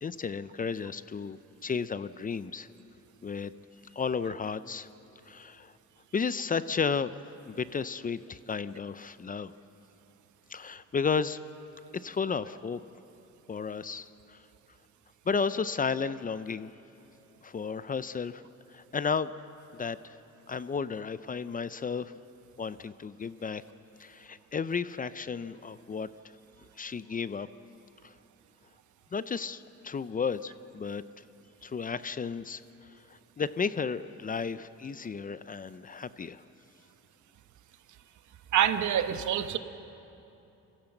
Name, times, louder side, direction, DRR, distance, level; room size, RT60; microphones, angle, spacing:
voice 1, 0.0-2.7 3.2-3.5 3.9-4.9 5.3-5.7 6.1-7.1 7.5-9.5 10.5-11.4 11.9-12.8 13.5-14.4 15.3-16.7 17.4-18.4 18.7-19.3 19.7-20.2 20.5-22.1 22.6-23.6 24.0-26.1 26.6-27.5 28.0-28.1 29.1-31.0 31.6-32.6 33.1-36.4, left 5 dB, 30° left, 15 dB, 0.5 m, -33 dB
voice 2, 38.5-39.6, right 10 dB, 75° right, 10 dB, 1.0 m, -26 dB
23.0 x 14.5 x 7.9 m, 2.9 s
cardioid pair, 90°, 30 cm